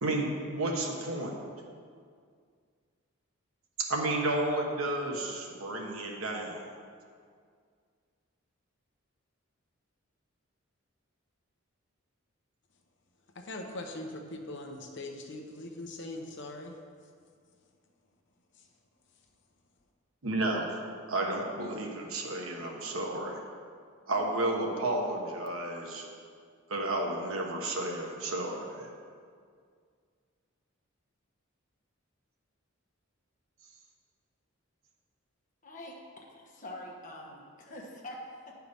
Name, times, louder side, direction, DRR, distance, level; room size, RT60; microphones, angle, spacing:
voice 1, 0.0-1.3 3.9-6.6 20.2-20.7 21.1-23.4 24.1-26.0 26.7-28.9, right 2 dB, 75° right, 0 dB, 1.2 m, -32 dB
voice 2, 13.4-16.7, left 2 dB, 55° left, 3 dB, 0.8 m, -41 dB
voice 3, 35.6-38.6, left 1 dB, 35° left, -1 dB, 1.2 m, -45 dB
9.5 x 4.7 x 5.4 m, 2.1 s
head